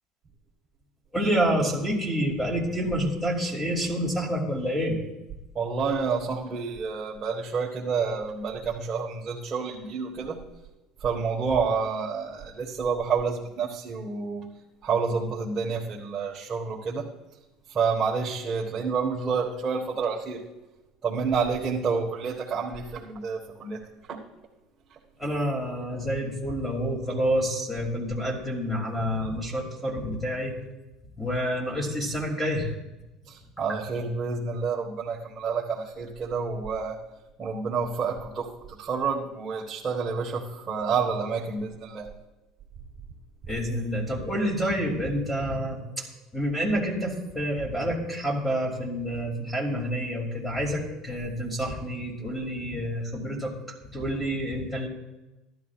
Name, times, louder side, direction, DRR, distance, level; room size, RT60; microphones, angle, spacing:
voice 1, 1.1-5.0 25.2-30.6 31.2-32.7 43.5-46.0 46.3-53.5 53.9-54.9, equal, ahead, -1 dB, 2.9 m, -28 dB
voice 2, 5.5-10.4 11.0-14.5 14.8-17.1 17.7-20.4 21.0-23.8 24.1-24.2 33.3-37.0 37.4-42.1, right 5 dB, 30° right, -5 dB, 1.5 m, -29 dB
15.5 x 12.0 x 2.5 m, 1.0 s
supercardioid pair, 115°, 0 cm